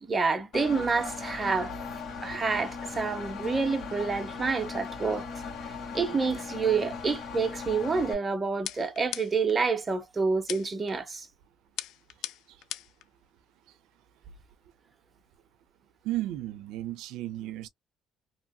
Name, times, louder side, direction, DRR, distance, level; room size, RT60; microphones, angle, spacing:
voice 1, 0.0-1.7 2.2-5.3 5.9-11.3, right 4 dB, 20° right, 0.7 m, -28 dB
Engine, 0.5-8.1, left 5 dB, 50° left, 1.6 m, -38 dB
sound 1, 8.7-9.6 10.5-10.9 11.8-13.0, left 13 dB, 75° left, 0.3 m, -38 dB
voice 2, 16.0-17.7, right 15 dB, 85° right, 0.4 m, -34 dB
2.9 x 2.6 x 2.3 m
cardioid pair, 150°, 0 cm